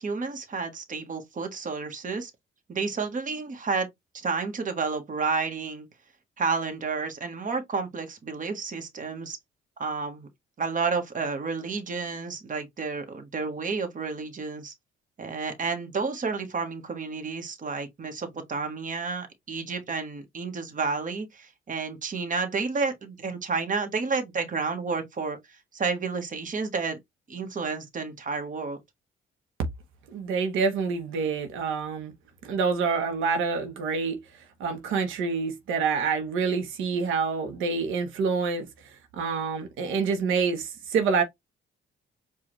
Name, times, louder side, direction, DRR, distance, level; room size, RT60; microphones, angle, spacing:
voice 1, 0.0-2.3 2.7-3.9 4.1-5.9 6.4-9.4 9.8-10.3 10.6-14.7 15.2-25.4 25.7-27.0 27.3-28.8, right 4 dB, 40° right, 1.2 m, -31 dB
voice 2, 30.1-32.1 32.4-34.2 34.6-38.7 39.1-41.2, right 5 dB, 90° right, 0.9 m, -27 dB
4.7 x 2.4 x 3.0 m
cardioid pair, 90°, 20 cm